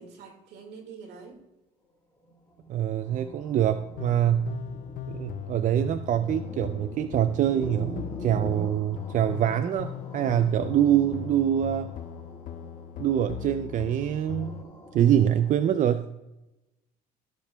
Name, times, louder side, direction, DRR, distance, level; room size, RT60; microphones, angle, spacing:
voice 1, 0.0-1.4, right 5 dB, 75° right, 3 dB, 2.0 m, -45 dB
sound 1, 2.2-15.7, left 2 dB, 15° left, 2.3 m, -44 dB
voice 2, 2.7-4.5 5.1-11.9 13.0-14.6 14.9-16.1, right 10 dB, 50° right, 10 dB, 0.4 m, -25 dB
sound 2, 4.0-14.6, left 10 dB, 50° left, 0.5 m, -39 dB
14.5 x 6.7 x 2.2 m, 0.97 s
cardioid pair, 110°, 17 cm